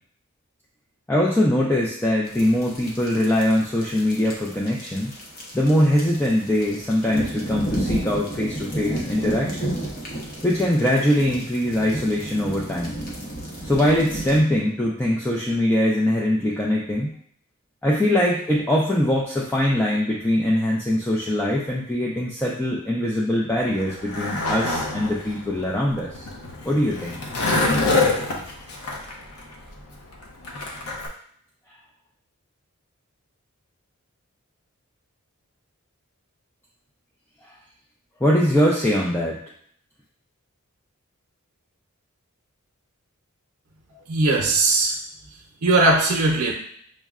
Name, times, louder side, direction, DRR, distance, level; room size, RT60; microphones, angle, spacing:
voice 1, 1.1-5.1 5.5-9.7 10.4-13.0 13.6-17.1 17.8-26.3 26.6-27.2 37.4-37.5 38.2-39.4, left 1 dB, 10° left, -4 dB, 0.4 m, -22 dB
sound 1, 2.3-14.4, right 1 dB, 45° left, 0.8 m, -32 dB
Skateboard, 23.6-31.1, left 2 dB, 80° left, 0.7 m, -26 dB
voice 2, 44.1-45.0 45.6-46.5, right 2 dB, 85° right, -1 dB, 0.6 m, -19 dB
6.2 x 2.1 x 2.4 m, 0.64 s
head